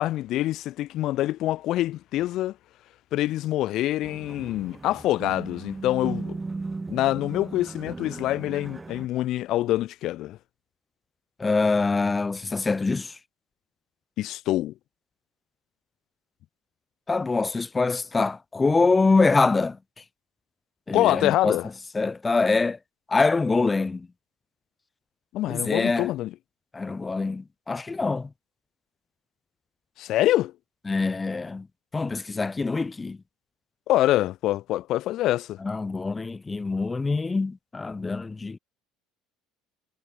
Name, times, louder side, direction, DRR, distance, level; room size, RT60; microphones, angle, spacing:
voice 1, 0.0-2.5 3.1-6.4 6.9-10.4 14.2-14.7 20.9-21.7 25.3-26.3 30.0-30.5 33.9-35.6, left 15 dB, 60° left, 1.7 m, -25 dB
sound 1, 4.0-9.1, right 3 dB, 15° right, 1.8 m, -36 dB
voice 2, 11.4-13.2 17.1-19.8 20.9-21.6 21.9-22.8 23.1-24.1 25.5-26.1 26.7-28.3 30.9-31.7 31.9-33.2 35.6-38.6, left 3 dB, 20° left, 0.6 m, -24 dB
supercardioid pair, 90°, 0 cm